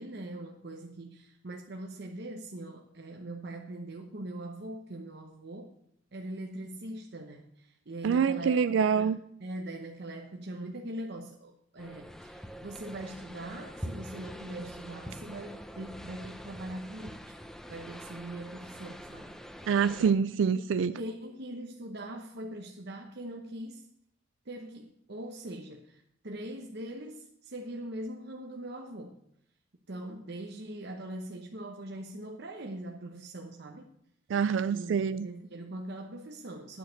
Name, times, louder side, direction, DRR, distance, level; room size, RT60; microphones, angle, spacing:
voice 1, 0.0-5.7 6.1-8.6 8.9-17.3 17.7-19.4 20.5-20.6 21.0-23.8 24.5-29.2 29.9-33.9 34.7-35.0 35.2-36.8, right 1 dB, 60° right, 2 dB, 1.0 m, -41 dB
voice 2, 8.0-9.2 19.7-21.0 34.3-35.3, right 6 dB, 85° right, 13 dB, 0.4 m, -26 dB
sound 1, 11.8-20.1, equal, 5° left, 0.7 m, -44 dB
9.2 x 6.5 x 8.0 m, 0.73 s
head